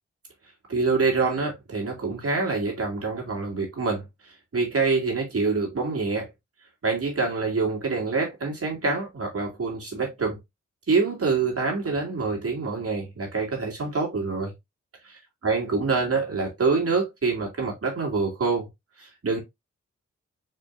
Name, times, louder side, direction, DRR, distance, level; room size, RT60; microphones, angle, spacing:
voice 1, 0.7-4.0 4.5-6.3 6.8-10.4 10.9-14.5 15.1-15.2 15.4-18.7 19.0-19.4, right 4 dB, 50° right, 2.7 m, -26 dB
4.6 x 4.2 x 2.6 m
supercardioid pair, 40°, 30 cm